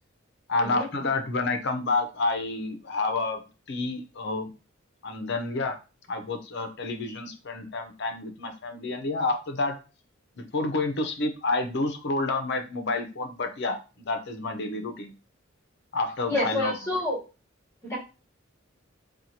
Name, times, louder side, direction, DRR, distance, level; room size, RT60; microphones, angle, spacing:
voice 1, 0.5-3.4 3.7-4.5 5.0-5.8 6.1-9.8 10.4-15.1 15.9-16.7, left 3 dB, 60° left, 5 dB, 0.7 m, -29 dB
voice 2, 16.3-17.2 17.8-18.0, left 2 dB, 15° left, -7 dB, 1.7 m, -28 dB
4.3 x 2.4 x 2.7 m, 0.31 s
head